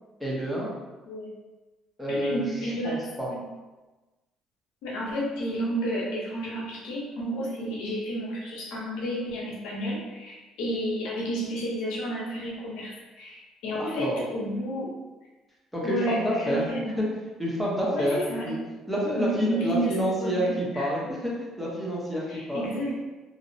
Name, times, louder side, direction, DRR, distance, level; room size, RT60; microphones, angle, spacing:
voice 1, 0.2-0.7 2.0-3.3 13.8-14.2 15.7-16.6 17.0-17.1 17.4-18.5 18.9-22.7, equal, ahead, -6 dB, 0.7 m, -28 dB
voice 2, 2.1-3.0 3.3-3.4 4.8-14.9 15.8-16.8 17.9-18.6 19.0-20.9 22.3-22.9, right 1 dB, 85° left, -4 dB, 0.7 m, -31 dB
2.6 x 2.0 x 2.5 m, 1.2 s
cardioid pair, 100°, 0 cm